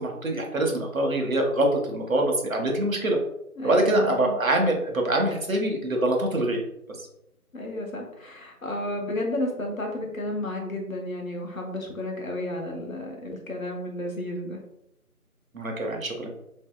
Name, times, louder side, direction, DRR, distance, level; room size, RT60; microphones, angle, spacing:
voice 1, 0.0-3.2 3.6-6.6 15.5-16.3, right 1 dB, 65° right, 1 dB, 0.7 m, -24 dB
voice 2, 3.6-4.3 7.5-14.6, left 1 dB, 65° left, 1 dB, 0.8 m, -32 dB
2.7 x 2.6 x 2.2 m, 0.82 s
figure-of-eight pair, 165°, 45 cm